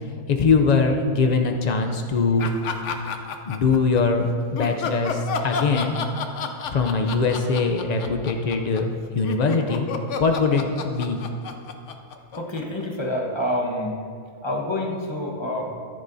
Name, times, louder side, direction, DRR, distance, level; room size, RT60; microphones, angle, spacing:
voice 1, 0.3-2.5 3.5-6.0 6.7-9.9 10.2-11.2, left 4 dB, 80° left, 4 dB, 0.3 m, -22 dB
sound 1, 2.4-4.0 4.6-12.8, left 5 dB, 60° left, 1.0 m, -31 dB
voice 2, 12.3-14.0 14.4-15.6, left 1 dB, 20° left, 0 dB, 1.2 m, -27 dB
14.0 x 10.5 x 2.7 m, 2.3 s
omnidirectional pair, 1.5 m